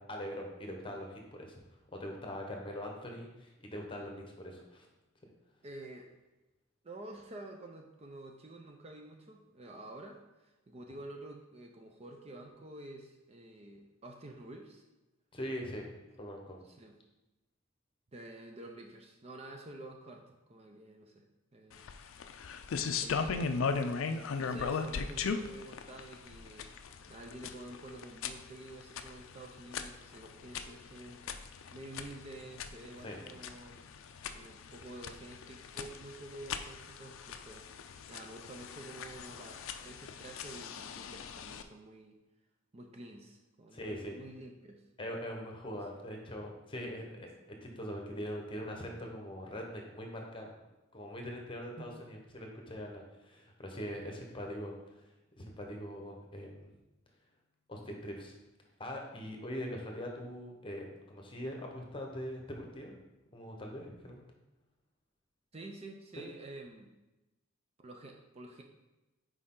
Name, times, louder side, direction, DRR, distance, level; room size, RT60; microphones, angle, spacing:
voice 1, 0.0-1.6 1.9-4.9 15.3-15.9 16.2-16.6 33.0-33.2 43.7-44.2 45.0-47.3 47.6-50.5 50.9-55.1 55.4-56.7 57.7-58.3 58.8-62.9 63.3-64.3 66.2-66.3, equal, 25° left, 1 dB, 1.0 m, -42 dB
voice 2, 5.6-6.2 6.8-14.8 16.6-17.0 18.1-21.3 21.5-21.8 23.0-23.8 24.4-26.7 27.1-31.4 31.7-33.8 34.3-42.2 42.7-44.8 45.7-45.8 47.1-47.2 51.8-52.1 65.5-66.9 67.8-68.6, right 1 dB, 30° right, 2 dB, 0.5 m, -49 dB
sound 1, 21.7-41.6, left 5 dB, 75° left, 0.4 m, -39 dB
6.4 x 4.7 x 3.7 m, 1.0 s
head